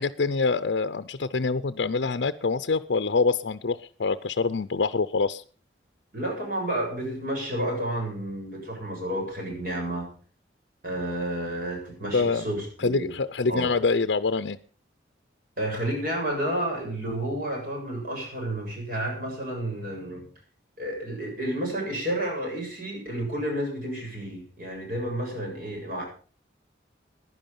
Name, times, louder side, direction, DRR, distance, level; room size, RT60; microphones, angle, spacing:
voice 1, 0.0-5.4 12.1-12.4 12.8-14.6, left 4 dB, 70° left, 10 dB, 0.6 m, -25 dB
voice 2, 6.1-10.1 10.8-13.1 13.5-13.7 15.6-20.3 20.8-26.0, right 1 dB, 50° right, 0 dB, 7.7 m, -31 dB
16.0 x 11.0 x 5.3 m, 0.40 s
head